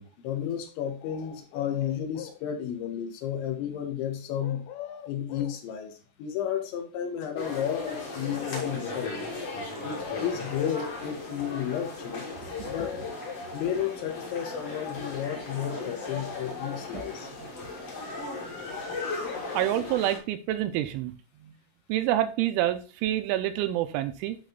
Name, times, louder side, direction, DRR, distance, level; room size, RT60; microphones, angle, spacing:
voice 1, 0.0-4.6 5.1-9.1 9.8-12.3 12.7-13.0 13.5-17.3, left 9 dB, 75° left, 5 dB, 3.4 m, -32 dB
sound 1, 1.0-2.4 4.4-5.6 7.4-8.6 9.6-9.7 9.9-10.8 12.1-13.5 15.7-16.9 19.2-19.8, left 11 dB, 90° left, 2.5 m, -42 dB
sound 2, 7.4-20.2, left 3 dB, 45° left, 2.1 m, -37 dB
voice 2, 19.5-21.1 21.4-21.5 21.9-24.4, right 13 dB, 85° right, 9 dB, 3.0 m, -27 dB
11.0 x 3.8 x 3.9 m, 0.34 s
omnidirectional pair, 5.7 m